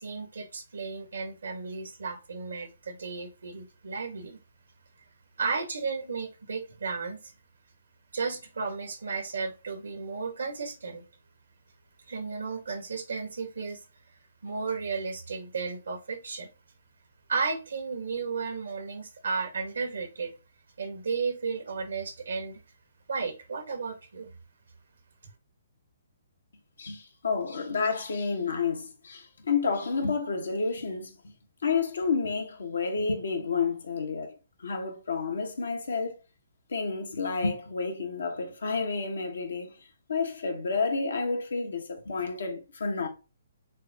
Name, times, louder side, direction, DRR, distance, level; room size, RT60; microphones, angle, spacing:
voice 1, 0.0-4.4 5.4-7.3 8.1-11.0 12.1-13.8 14.4-16.5 17.3-20.3 20.8-22.6 23.1-24.3, right 4 dB, 80° right, 1.5 m, -34 dB
voice 2, 26.8-31.1 31.6-36.2 36.7-39.8 40.1-43.1, left 4 dB, 80° left, 1.3 m, -30 dB
6.5 x 2.2 x 2.8 m
hypercardioid pair, 140°, 0 cm